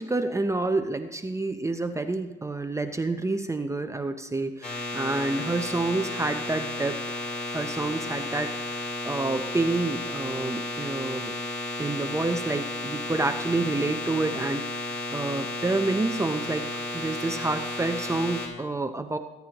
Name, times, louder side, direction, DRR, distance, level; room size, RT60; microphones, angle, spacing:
voice 1, 0.0-11.3 11.8-19.2, right 2 dB, 15° right, 7 dB, 0.7 m, -29 dB
sound 1, 4.6-18.5, left 2 dB, 40° left, 4.1 m, -33 dB
21.0 x 9.3 x 3.0 m, 1.1 s
supercardioid pair, 80°, 19 cm